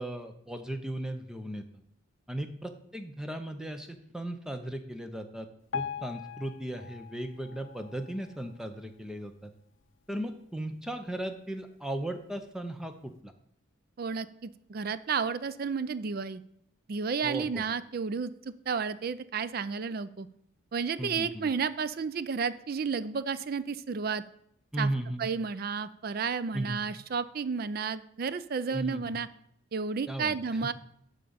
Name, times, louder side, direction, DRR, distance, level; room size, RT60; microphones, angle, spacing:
voice 1, 0.0-1.6 2.3-5.5 5.7-9.5 10.1-13.3 17.2-17.6 21.0-21.5 24.7-25.3 26.5-26.8 28.7-29.1 30.1-30.3, right 1 dB, 5° right, 7 dB, 0.6 m, -36 dB
Piano, 5.7-8.8 9.3-9.5 9.8-9.9 10.6-10.7 11.3-11.4, left 7 dB, 65° left, 0.6 m, -41 dB
voice 2, 14.0-16.4 16.9-20.3 20.7-24.2 24.8-24.9 25.2-29.3 29.7-30.7, right 5 dB, 45° right, 15 dB, 0.4 m, -32 dB
11.0 x 3.8 x 6.9 m, 0.72 s
head